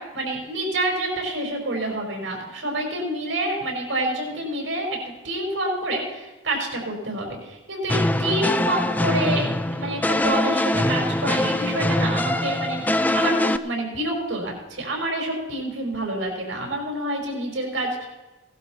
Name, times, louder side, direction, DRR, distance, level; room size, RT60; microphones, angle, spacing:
voice 1, 0.0-9.5 9.7-18.1, right 1 dB, 90° right, 1 dB, 4.7 m, -28 dB
sound 1, 7.9-13.6, left 1 dB, 10° left, 0.3 m, -23 dB
17.0 x 12.0 x 4.3 m, 1.1 s
head